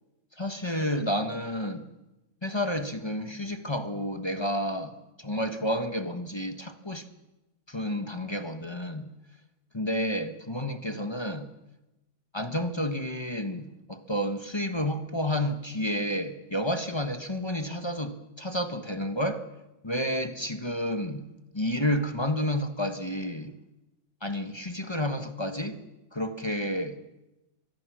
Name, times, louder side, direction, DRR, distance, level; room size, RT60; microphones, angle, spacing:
voice 1, 0.4-1.9 2.4-7.0 7.7-9.1 9.7-11.5 12.3-19.4 19.8-21.3 21.5-23.5 24.2-25.8 26.1-27.0, equal, 15° left, 7 dB, 1.1 m, -30 dB
25.0 x 21.0 x 6.3 m, 0.97 s
omnidirectional pair, 2.2 m